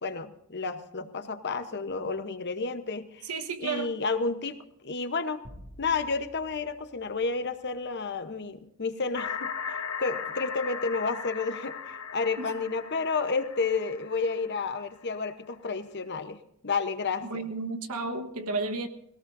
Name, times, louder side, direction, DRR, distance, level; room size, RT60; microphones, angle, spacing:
voice 1, 0.0-3.3 3.6-5.4 5.8-16.4 16.6-17.5, left 4 dB, 50° left, 10 dB, 1.0 m, -31 dB
voice 2, 3.3-3.9 12.4-12.5 17.3-18.9, right 3 dB, 85° right, 7 dB, 1.3 m, -32 dB
sound 1, 5.4-8.0, equal, 55° right, 2.6 m, -51 dB
sound 2, 9.2-14.9, left 6 dB, 70° left, 1.2 m, -37 dB
21.0 x 17.5 x 2.7 m, 0.76 s
head